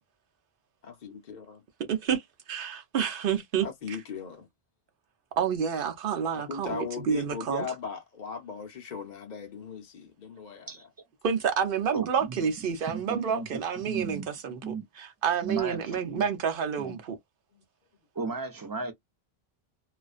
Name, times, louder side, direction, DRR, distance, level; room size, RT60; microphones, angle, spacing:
voice 1, 1.9-2.2 2.5-4.0 5.4-7.6 11.2-17.2, right 7 dB, 60° right, 0.8 m, -29 dB
voice 2, 3.6-4.5 6.3-10.9 17.5-17.6, left 5 dB, 50° left, 0.6 m, -38 dB
voice 3, 11.9-13.5 13.9-14.3 14.6-14.8 15.4-16.2 16.8-16.9 18.2-18.9, right 4 dB, 30° right, 0.4 m, -35 dB
2.4 x 2.1 x 2.4 m
omnidirectional pair, 1.1 m